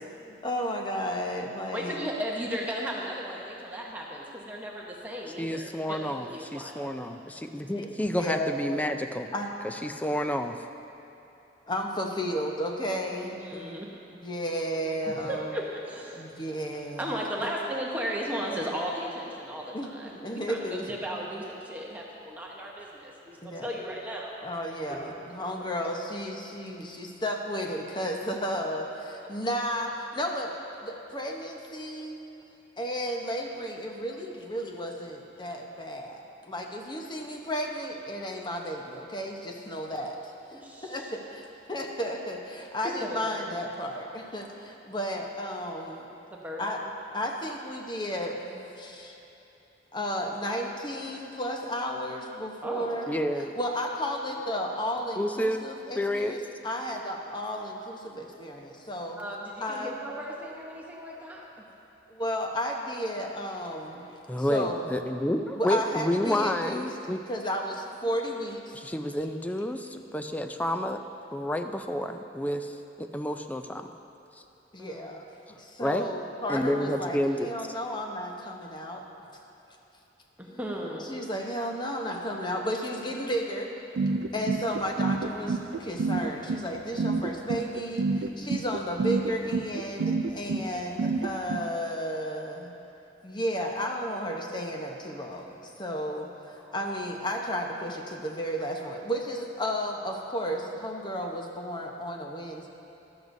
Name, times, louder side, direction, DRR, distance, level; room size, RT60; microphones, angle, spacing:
voice 1, 0.3-2.0 7.7-8.5 9.3-9.5 11.7-13.8 14.2-15.5 16.1-17.1 17.4-17.5 19.7-19.9 20.2-20.9 23.4-23.7 24.4-30.5 30.8-32.2 32.8-46.1 46.6-46.8 47.1-49.2 49.9-59.2 59.6-60.0 62.1-64.1 64.5-64.9 65.5-66.9 67.3-68.7 74.7-75.2 75.5-79.0 80.5-80.6 81.1-83.7 84.1-92.7 93.2-102.7, equal, 25° left, 1 dB, 0.9 m, -33 dB
voice 2, 1.7-6.9 13.4-13.9 15.1-16.3 17.0-24.3 24.9-25.1 40.5-41.1 42.8-43.6 46.3-46.6 52.6-52.9 59.2-61.6 74.8-75.1 80.4-81.1 96.6-96.7, equal, 10° right, -3 dB, 0.9 m, -36 dB
voice 3, 5.4-9.3 9.6-10.6 53.1-53.5 55.2-55.7 56.0-56.4 64.3-67.2 68.7-71.0 71.3-73.9 75.8-76.1 76.5-77.5, left 1 dB, 10° left, 7 dB, 0.4 m, -30 dB
sound 1, 84.0-91.6, right 3 dB, 75° right, 0.4 m, -28 dB
14.5 x 12.0 x 2.7 m, 3.0 s
head